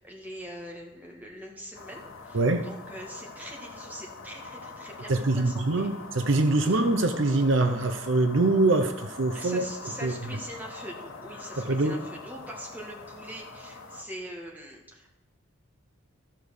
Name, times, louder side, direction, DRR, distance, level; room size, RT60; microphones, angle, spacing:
voice 1, 0.0-5.9 9.3-15.1, right 1 dB, 10° right, 0 dB, 1.8 m, -42 dB
sound 1, 1.7-14.0, left 3 dB, 70° left, 1.3 m, -43 dB
voice 2, 2.3-2.7 5.1-9.7 10.0-10.1 11.6-12.0, right 2 dB, 60° right, 8 dB, 0.7 m, -24 dB
14.0 x 5.2 x 6.4 m, 0.98 s
head